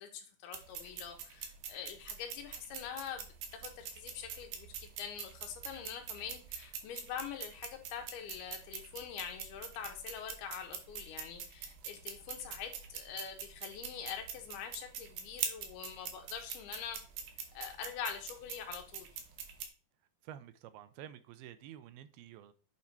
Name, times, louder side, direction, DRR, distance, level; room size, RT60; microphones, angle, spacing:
voice 1, 0.0-17.0 17.5-19.1, left 8 dB, 80° left, 5 dB, 3.1 m, -44 dB
sound 1, 0.5-19.6, right 7 dB, 65° right, 2.2 m, -45 dB
voice 2, 20.2-22.5, right 11 dB, 85° right, 12 dB, 2.4 m, -50 dB
8.3 x 4.3 x 4.6 m, 0.38 s
omnidirectional pair, 4.5 m